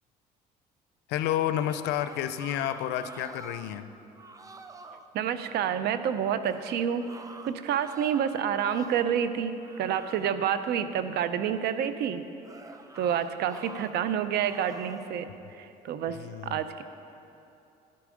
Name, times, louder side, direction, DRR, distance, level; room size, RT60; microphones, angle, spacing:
voice 1, 1.1-3.9 16.1-16.6, left 11 dB, 90° left, 12 dB, 0.5 m, -30 dB
sound 1, 1.4-3.8 4.1-5.1 6.4-9.2 9.6-10.5 12.4-13.9 14.3-15.1, right 3 dB, 20° right, 0.6 m, -47 dB
voice 2, 5.1-7.0 7.4-12.2 13.0-15.3 15.6-16.2 16.4-16.8, right 8 dB, 75° right, 11 dB, 0.6 m, -28 dB
11.5 x 8.4 x 5.1 m, 2.8 s
cardioid pair, 110°, 17 cm